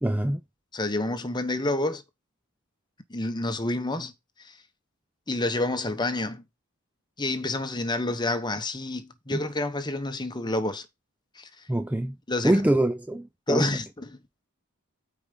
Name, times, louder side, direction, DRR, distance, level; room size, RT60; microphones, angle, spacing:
voice 1, 0.0-0.4 9.3-9.4 11.7-12.1 12.4-13.8, right 1 dB, 5° right, 0.4 m, -24 dB
voice 2, 0.7-2.0 3.1-4.1 4.4-4.6 5.3-6.4 7.2-10.9 11.4-11.6 12.3-12.6 13.5-14.2, left 2 dB, 20° left, 1.0 m, -29 dB
8.7 x 4.8 x 5.3 m
head